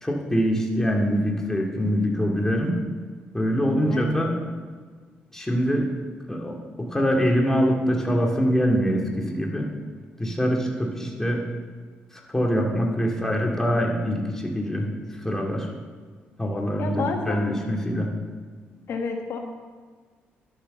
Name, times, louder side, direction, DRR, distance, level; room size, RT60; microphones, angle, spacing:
voice 1, 0.0-2.8 3.3-4.3 5.3-5.9 6.3-9.7 10.2-11.4 12.3-14.9 15.2-15.7 16.4-18.1, equal, 10° left, 0 dB, 2.6 m, -24 dB
voice 2, 16.8-17.5 18.9-19.4, left 4 dB, 65° left, 3 dB, 1.3 m, -29 dB
11.5 x 8.5 x 6.8 m, 1.5 s
cardioid pair, 80°, 5 cm